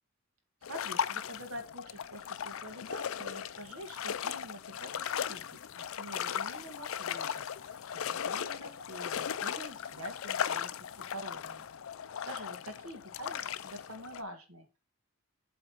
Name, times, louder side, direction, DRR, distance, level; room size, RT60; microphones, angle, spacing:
sound 1, 0.6-14.2, left 8 dB, 65° left, 0.4 m, -37 dB
voice 1, 0.7-11.7 12.2-14.8, equal, 80° right, 5 dB, 1.9 m, -46 dB
7.7 x 3.6 x 5.7 m, 0.29 s
head